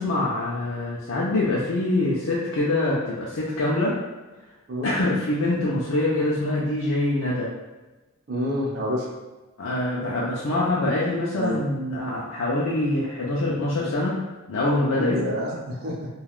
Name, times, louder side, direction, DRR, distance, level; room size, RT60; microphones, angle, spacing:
voice 1, 0.0-4.0 4.8-7.5 9.6-14.2 14.5-15.2, left 2 dB, 65° left, -6 dB, 0.4 m, -24 dB
voice 2, 8.3-9.1 11.3-11.6 14.9-16.1, equal, 45° right, -2 dB, 0.6 m, -28 dB
3.3 x 2.3 x 2.4 m, 1.2 s
head